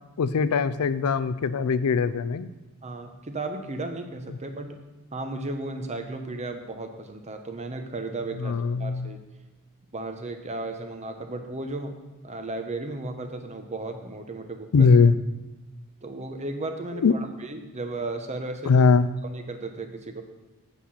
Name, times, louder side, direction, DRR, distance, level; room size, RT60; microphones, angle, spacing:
voice 1, 0.2-2.5 4.3-4.4 8.4-9.1 14.7-15.2 17.0-17.1 18.7-19.1, left 5 dB, 75° left, 15 dB, 0.4 m, -21 dB
voice 2, 2.8-8.5 8.8-9.2 9.9-12.0 12.2-14.9 16.0-18.9 19.2-20.2, right 2 dB, 30° right, 6 dB, 0.8 m, -35 dB
8.2 x 7.6 x 4.2 m, 1.1 s
head